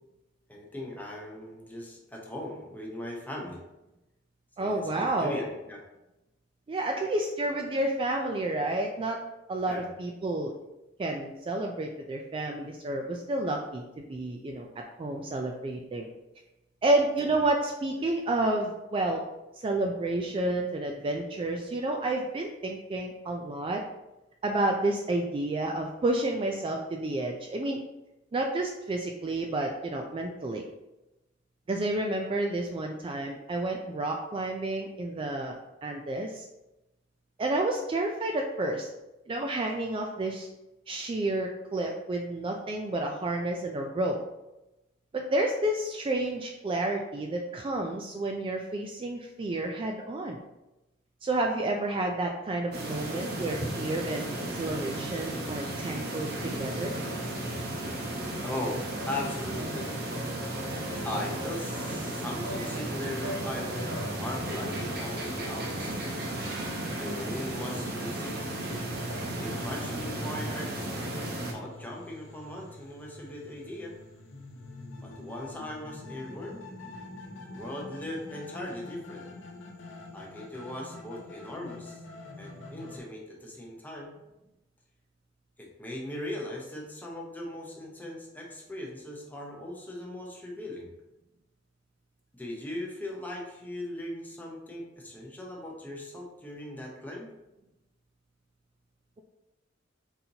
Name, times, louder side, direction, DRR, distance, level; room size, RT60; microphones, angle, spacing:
voice 1, 0.5-3.6 4.6-5.8 9.7-9.9 17.2-17.3 58.4-59.9 61.0-63.9 64.2-66.0 67.0-68.5 69.1-70.9 71.5-73.9 75.0-76.6 77.5-79.3 80.1-82.0 82.4-84.1 85.6-90.9 92.4-97.3, left 1 dB, 10° left, -2 dB, 0.8 m, -39 dB
voice 2, 4.6-5.4 6.7-9.2 9.5-10.5 11.0-14.7 15.0-16.1 16.8-19.2 19.6-23.8 24.4-27.8 28.3-30.6 31.7-35.5 35.8-36.5 37.4-38.9 39.3-40.5 40.9-44.2 45.1-50.4 51.2-57.0, right 2 dB, 30° right, 2 dB, 0.3 m, -30 dB
sound 1, 52.7-71.5, right 1 dB, 60° right, 0.8 m, -34 dB
sound 2, 63.5-83.0, left 2 dB, 75° left, 0.8 m, -46 dB
4.2 x 3.9 x 2.8 m, 0.96 s
head